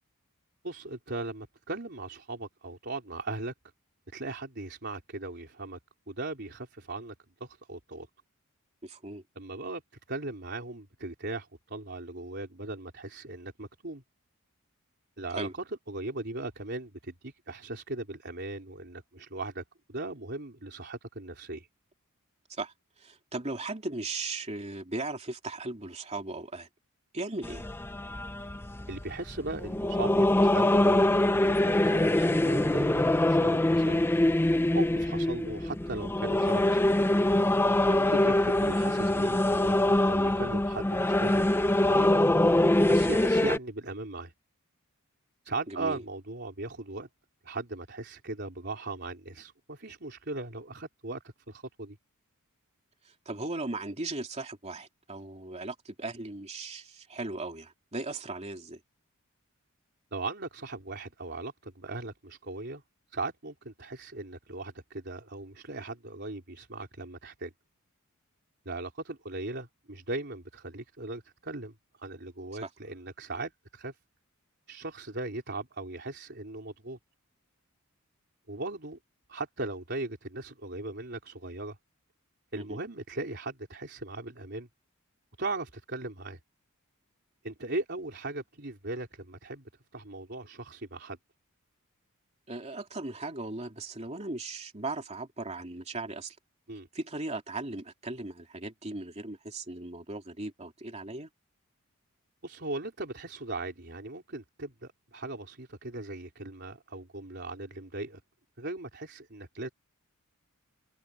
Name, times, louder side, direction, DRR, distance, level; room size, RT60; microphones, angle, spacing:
voice 1, 0.6-3.5 4.1-5.8 6.1-7.1 7.4-8.1 9.4-9.8 10.1-14.0 15.2-19.6 19.9-21.7 28.9-34.0 34.7-36.9 37.9-39.8 40.0-41.5 41.8-42.4 42.9-44.3 45.4-47.1 47.4-52.0 60.1-62.8 63.1-67.5 68.7-71.7 72.0-74.0 74.7-77.0 78.5-79.0 79.3-81.8 82.5-84.7 85.4-86.4 87.4-91.2 96.7-96.9 102.4-108.2 108.6-109.7, right 2 dB, 50° right, 3.8 m, -38 dB
voice 2, 8.8-9.2 15.3-15.5 22.6-22.7 23.0-26.7 27.1-27.7 37.8-38.1 45.7-46.0 53.2-58.8 72.6-72.7 82.5-82.8 92.5-96.3 96.9-101.3, right 2 dB, 30° right, 3.1 m, -37 dB
sound 1, 27.4-43.6, left 1 dB, 10° left, 0.5 m, -24 dB
head